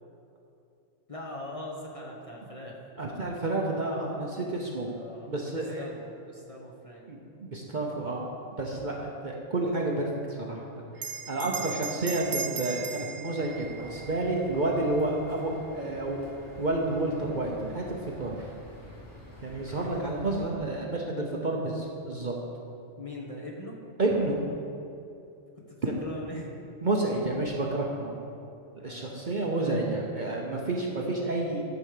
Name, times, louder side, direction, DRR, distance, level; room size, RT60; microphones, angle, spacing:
voice 1, 1.1-2.8 4.8-7.1 11.5-11.8 23.0-23.8 25.6-26.7 27.1-27.4 27.9-29.1, left 1 dB, 30° left, -3 dB, 1.1 m, -42 dB
voice 2, 3.0-4.9 5.3-5.9 7.1-8.2 8.6-10.6 11.3-16.2 16.6-18.4 19.4-22.3 24.0-24.4 25.8-25.9 26.8-28.1 28.8-31.6, right 2 dB, 40° right, -1 dB, 0.9 m, -30 dB
Bell, 11.0-15.8, right 6 dB, 70° right, 0.4 m, -38 dB
sound 1, 13.4-20.5, left 1 dB, 65° left, 2.8 m, -48 dB
11.0 x 4.9 x 6.7 m, 2.6 s
omnidirectional pair, 1.4 m